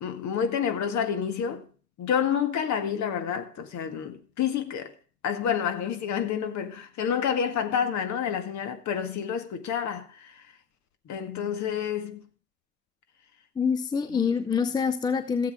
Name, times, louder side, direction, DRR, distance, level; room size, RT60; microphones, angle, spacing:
voice 1, 0.0-1.6 2.0-4.9 5.2-10.4 11.1-12.2, left 8 dB, 35° left, 1.9 m, -29 dB
voice 2, 13.6-15.5, left 6 dB, 10° left, 0.5 m, -26 dB
16.5 x 7.7 x 3.7 m
hypercardioid pair, 85°, 47 cm